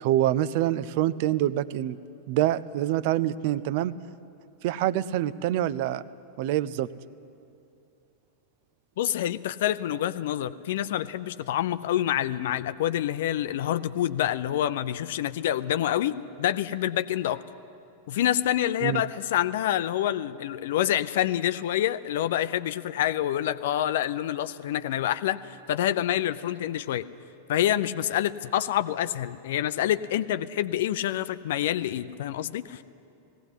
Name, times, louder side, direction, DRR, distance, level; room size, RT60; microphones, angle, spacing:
voice 1, 0.0-2.0 2.3-3.9 4.6-6.0 6.4-6.9 18.8-19.0, right 13 dB, 50° right, 17 dB, 0.6 m, -25 dB
voice 2, 9.0-17.4 18.1-27.1 27.5-32.8, left 12 dB, 55° left, 14 dB, 0.6 m, -27 dB
18.5 x 17.0 x 10.0 m, 2.7 s
figure-of-eight pair, 90°, 0 cm